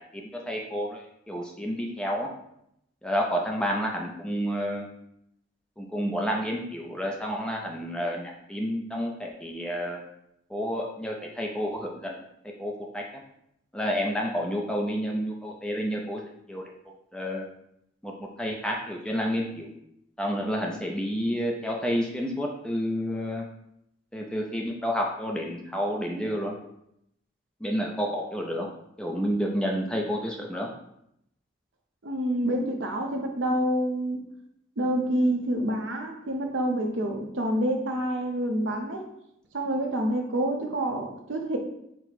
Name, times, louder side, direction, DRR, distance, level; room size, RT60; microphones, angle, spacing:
voice 1, 0.1-2.3 3.0-4.9 5.8-10.0 10.5-12.2 12.6-13.0 13.7-16.2 16.5-16.7 17.1-17.4 18.0-19.7 20.2-23.4 24.1-26.5 27.6-28.7 29.0-30.7, equal, 5° left, 0 dB, 0.3 m, -30 dB
voice 2, 32.0-34.2 34.8-39.0 39.5-41.6, right 1 dB, 75° right, 3 dB, 0.7 m, -27 dB
4.4 x 2.0 x 4.1 m, 0.78 s
head